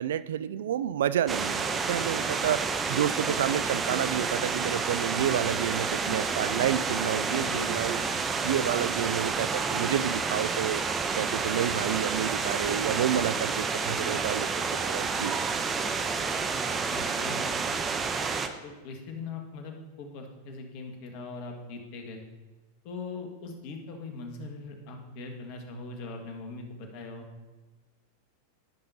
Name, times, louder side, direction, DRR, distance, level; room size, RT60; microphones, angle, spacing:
voice 1, 0.0-8.0 8.4-10.8 11.2-15.3, right 10 dB, 70° right, 17 dB, 0.3 m, -30 dB
sound 1, 1.3-18.5, right 5 dB, 25° right, 0.7 m, -29 dB
voice 2, 7.2-7.8 16.9-17.5 18.6-22.2 22.8-27.3, left 3 dB, 55° left, 3 dB, 1.6 m, -40 dB
15.0 x 5.8 x 2.7 m, 1.3 s
hypercardioid pair, 95°, 0 cm